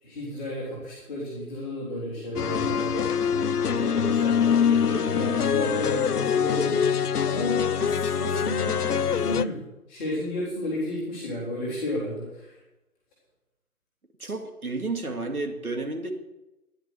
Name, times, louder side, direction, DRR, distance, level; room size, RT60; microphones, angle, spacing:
voice 1, 0.0-3.1 3.6-6.8 7.2-8.8 9.1-9.6 9.9-12.6, left 1 dB, 5° left, -8 dB, 1.7 m, -32 dB
sound 1, 2.4-9.5, left 7 dB, 85° left, 0.7 m, -24 dB
voice 2, 14.2-16.1, right 3 dB, 70° right, 5 dB, 2.5 m, -31 dB
12.0 x 10.5 x 6.7 m, 0.99 s
figure-of-eight pair, 160°, 45 cm